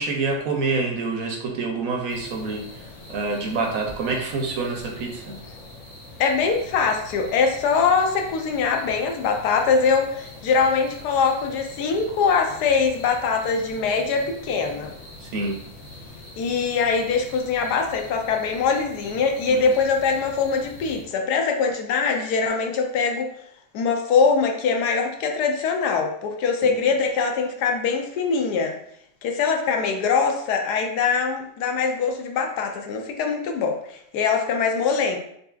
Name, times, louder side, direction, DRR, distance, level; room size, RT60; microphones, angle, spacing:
voice 1, 0.0-2.7 3.1-5.4 15.2-15.6 19.5-19.6 26.6-26.7, right 3 dB, 65° right, 1 dB, 0.9 m, -27 dB
sound 1, 2.1-21.0, left 2 dB, 55° left, 1.4 m, -43 dB
voice 2, 6.2-14.9 16.4-23.3 23.7-28.8 29.2-35.2, left 5 dB, 80° left, 3 dB, 1.2 m, -23 dB
6.4 x 2.8 x 2.3 m, 0.71 s
omnidirectional pair, 1.7 m